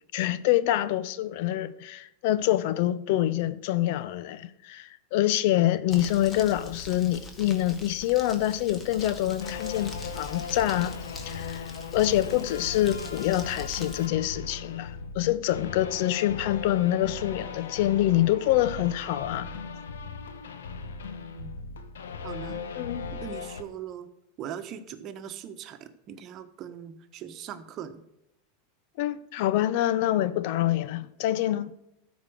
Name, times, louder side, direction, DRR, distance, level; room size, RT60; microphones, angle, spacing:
voice 1, 0.1-11.0 11.2-19.5 22.7-23.1 29.0-31.7, left 13 dB, 60° left, 0.6 m, -26 dB
Crumpling crinkling, 5.9-14.1, left 1 dB, 25° left, 1.9 m, -43 dB
sound 1, 9.4-23.6, left 5 dB, 80° left, 1.1 m, -38 dB
voice 2, 22.2-22.6 23.1-24.1 24.4-28.0, right 8 dB, 45° right, 1.2 m, -40 dB
13.0 x 5.1 x 6.3 m
hypercardioid pair, 100°, 0 cm